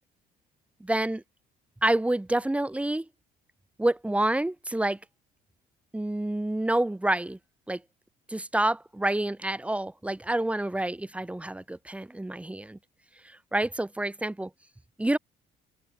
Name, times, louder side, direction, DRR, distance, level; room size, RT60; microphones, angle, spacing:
voice 1, 0.8-1.2 1.8-3.1 3.8-5.0 5.9-7.4 7.7-7.8 8.3-12.8 13.2-14.5 15.0-15.2, right 1 dB, 5° right, 2.2 m, -28 dB
cardioid pair, 110°, 17 cm